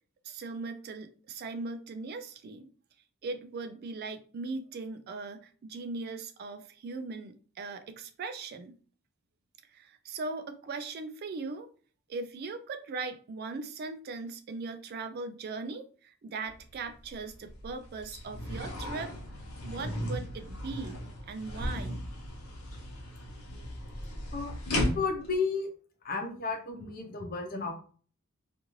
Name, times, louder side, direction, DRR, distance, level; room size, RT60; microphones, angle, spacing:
voice 1, 0.2-2.7 3.2-8.7 9.7-11.7 12.1-19.1 19.6-21.0 21.3-22.0, right 3 dB, 45° right, 8 dB, 0.3 m, -39 dB
sound 1, 16.5-16.6 17.0-25.3, left 1 dB, 90° left, 0.9 m, -36 dB
voice 2, 24.3-25.7 26.0-27.8, left 4 dB, 45° left, 3 dB, 0.7 m, -33 dB
2.5 x 2.5 x 3.0 m, 0.41 s
head